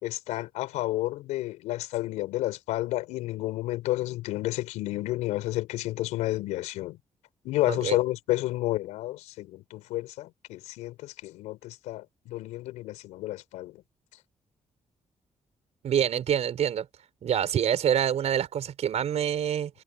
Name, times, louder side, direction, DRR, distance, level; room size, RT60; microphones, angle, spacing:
voice 1, 0.0-7.0 7.4-13.8, left 17 dB, 85° left, 4.2 m, -31 dB
voice 2, 7.7-8.0 15.8-16.9 17.2-19.7, right 9 dB, 70° right, 5.1 m, -26 dB
hypercardioid pair, 40°, 12 cm